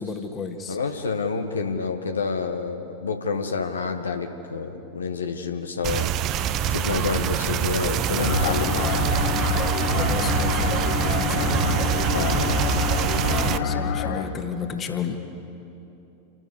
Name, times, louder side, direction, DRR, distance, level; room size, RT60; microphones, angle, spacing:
voice 1, 0.0-0.8 9.8-11.6 13.3-15.2, left 6 dB, 25° left, 5 dB, 1.8 m, -33 dB
voice 2, 0.7-6.2 6.7-9.4 12.0-12.8, left 5 dB, 70° left, 5 dB, 1.2 m, -29 dB
sound 1, 5.8-13.6, right 9 dB, 35° right, 0.8 m, -25 dB
sound 2, 8.2-14.2, left 6 dB, 45° left, 1.8 m, -26 dB
29.0 x 12.5 x 8.2 m, 2.9 s
figure-of-eight pair, 90°, 0 cm